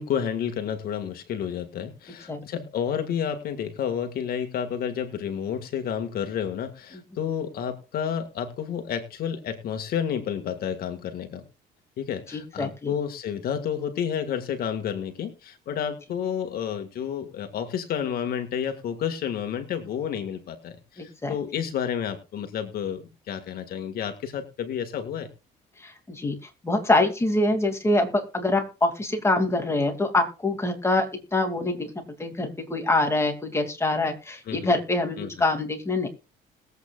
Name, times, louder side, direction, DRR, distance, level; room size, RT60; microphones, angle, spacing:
voice 1, 0.0-11.4 12.0-25.3 34.5-34.8 35.2-35.3, left 8 dB, 65° left, 7 dB, 1.8 m, -30 dB
voice 2, 12.3-12.9 21.0-21.4 25.8-26.4 26.6-36.1, left 2 dB, 15° left, 4 dB, 2.5 m, -25 dB
20.5 x 8.3 x 2.4 m, 0.31 s
cardioid pair, 110°, 17 cm